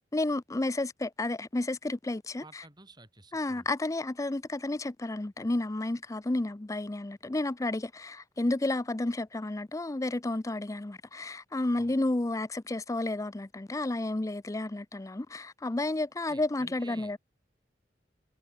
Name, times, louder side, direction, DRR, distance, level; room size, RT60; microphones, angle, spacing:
voice 1, 0.1-2.4 3.3-17.2, left 2 dB, 20° left, 0.5 m, -31 dB
voice 2, 2.4-3.7 11.8-11.9 16.3-17.1, right 2 dB, 25° right, 5.0 m, -52 dB
head